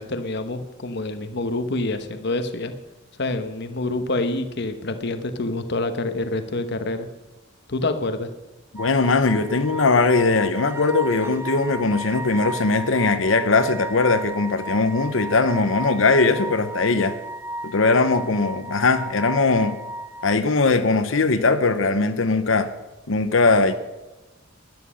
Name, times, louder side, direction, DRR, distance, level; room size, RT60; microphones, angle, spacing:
voice 1, 0.0-2.7 3.2-7.1 7.7-8.3, left 2 dB, 60° left, 8 dB, 1.1 m, -27 dB
voice 2, 8.7-17.2 17.6-19.8 20.2-22.7 23.1-23.7, left 3 dB, 80° left, 10 dB, 0.9 m, -20 dB
sound 1, 8.8-20.4, right 1 dB, 15° right, 1.2 m, -34 dB
13.0 x 11.0 x 6.4 m, 1.1 s
head